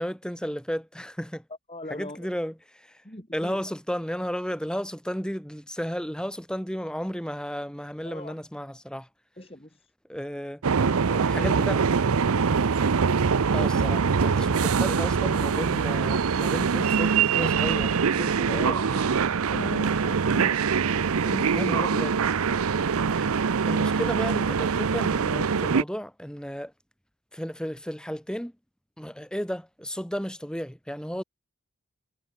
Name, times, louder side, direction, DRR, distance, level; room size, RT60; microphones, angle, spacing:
voice 1, 0.0-1.4 1.9-3.0 3.3-9.1 10.1-10.6 11.3-11.8 13.5-19.1 20.4-20.6 21.5-22.2 23.1-23.3 23.7-26.7 27.3-28.5 29.0-31.2, equal, 5° left, 5.6 m, -33 dB
voice 2, 1.7-2.3 3.0-3.6 8.1-8.3 9.4-9.7 10.8-11.6 14.5-14.6 18.5-18.9 19.5-20.6 20.9-21.8, left 1 dB, 25° left, 3.7 m, -39 dB
sound 1, 10.6-25.8, right 6 dB, 85° right, 0.6 m, -24 dB
Organ, 12.7-23.5, right 1 dB, 40° right, 2.5 m, -46 dB
head